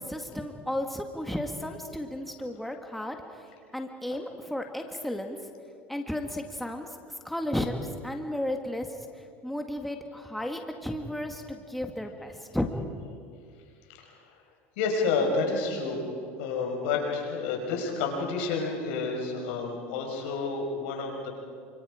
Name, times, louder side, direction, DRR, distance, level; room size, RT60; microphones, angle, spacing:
voice 1, 0.0-3.2 3.7-5.4 5.9-6.9 7.2-7.8 8.0-8.9 9.4-12.7, left 1 dB, ahead, 3 dB, 1.9 m, -33 dB
voice 2, 14.8-16.0 16.4-21.3, left 4 dB, 75° left, 1 dB, 5.6 m, -29 dB
28.0 x 26.0 x 5.1 m, 2.3 s
supercardioid pair, 110°, 6 cm